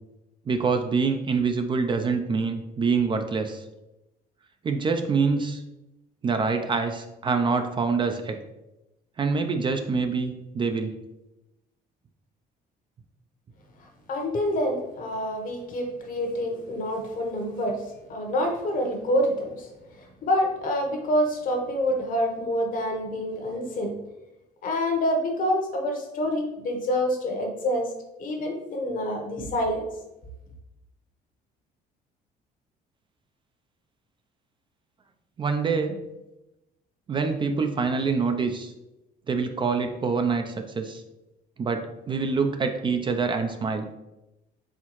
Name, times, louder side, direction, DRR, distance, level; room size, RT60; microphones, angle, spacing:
voice 1, 0.5-3.6 4.6-5.6 6.2-8.4 9.2-10.9 35.4-36.0 37.1-38.7 39.3-41.0 41.6-43.9, right 4 dB, 30° right, 6 dB, 0.4 m, -25 dB
voice 2, 14.1-17.8 18.1-19.7 19.9-24.0 24.6-27.9 28.2-29.9, equal, 55° left, 3 dB, 1.0 m, -27 dB
4.4 x 3.4 x 3.0 m, 0.96 s
cardioid pair, 110°, 17 cm